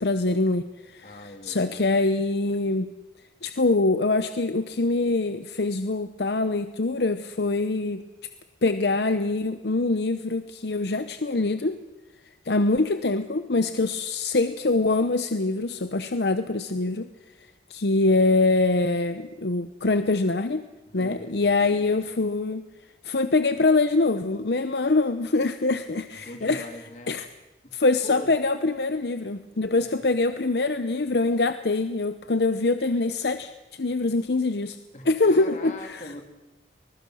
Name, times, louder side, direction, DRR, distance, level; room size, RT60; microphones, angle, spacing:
voice 1, 0.0-2.9 3.4-8.0 8.6-11.8 12.4-17.1 17.7-20.7 20.9-22.6 23.0-26.7 27.1-27.3 27.7-34.8 35.0-36.0, left 3 dB, 65° left, 10 dB, 0.8 m, -24 dB
voice 2, 1.0-2.1 21.0-21.9 26.1-27.1 27.6-27.7 28.0-28.4 29.8-30.0 34.9-36.2, left 1 dB, 45° left, 4 dB, 2.8 m, -42 dB
24.5 x 20.5 x 6.3 m, 1.1 s
head